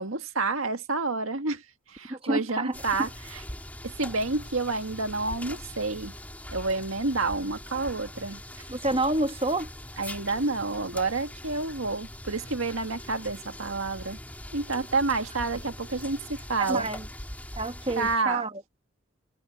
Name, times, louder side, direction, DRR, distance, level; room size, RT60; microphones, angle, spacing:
voice 1, 0.0-1.6 1.9-3.4 3.8-6.1 6.5-8.4 10.0-14.2 14.5-16.9 18.0-18.4, right 3 dB, 80° right, 1.9 m, -29 dB
voice 2, 2.1-2.7 8.7-9.7 16.6-17.1 17.6-18.6, right 2 dB, 25° right, 1.2 m, -28 dB
sound 1, 2.7-18.2, left 1 dB, 10° left, 3.0 m, -42 dB
head